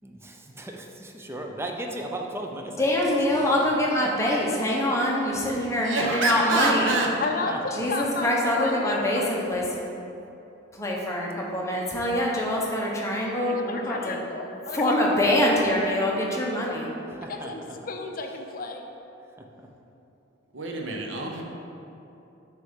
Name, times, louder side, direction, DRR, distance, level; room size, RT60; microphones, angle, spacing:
voice 1, 0.0-2.9 3.3-4.1 7.5-7.6 17.1-17.8 19.4-19.7, right 1 dB, 15° right, 2 dB, 0.5 m, -37 dB
voice 2, 2.8-7.0 7.7-9.6 10.7-14.2 14.7-16.9, left 1 dB, 15° left, -3 dB, 0.8 m, -24 dB
voice 3, 5.8-7.1 20.5-21.4, right 2 dB, 80° right, 0 dB, 0.8 m, -26 dB
voice 4, 7.2-9.3 13.5-15.0 15.5-15.8 17.3-18.9, left 3 dB, 45° left, 3 dB, 0.5 m, -33 dB
6.2 x 3.3 x 5.6 m, 2.9 s
head